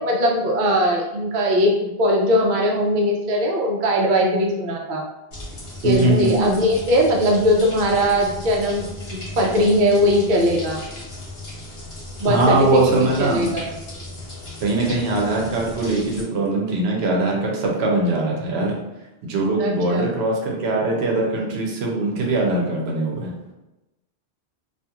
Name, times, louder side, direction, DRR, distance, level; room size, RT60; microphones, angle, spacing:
voice 1, 0.0-5.0 5.8-8.9 9.1-10.8 12.2-13.7 19.6-20.1, equal, 60° right, 0 dB, 0.6 m, -20 dB
sound 1, 5.3-16.2, left 1 dB, 70° left, 1.1 m, -36 dB
voice 2, 5.8-6.5 12.3-13.5 14.6-18.8 19.2-23.3, right 2 dB, 80° right, -1 dB, 0.9 m, -21 dB
2.8 x 2.4 x 2.3 m, 0.99 s
omnidirectional pair, 1.1 m